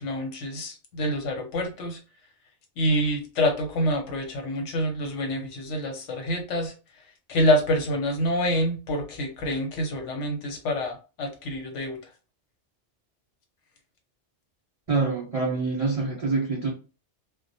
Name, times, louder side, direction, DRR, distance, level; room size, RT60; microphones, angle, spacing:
voice 1, 0.0-2.0 2.8-6.7 7.3-12.0, equal, 85° left, 4 dB, 1.0 m, -27 dB
voice 2, 14.9-16.7, right 3 dB, 65° right, -1 dB, 0.3 m, -25 dB
2.2 x 2.1 x 2.6 m, 0.33 s
omnidirectional pair, 1.2 m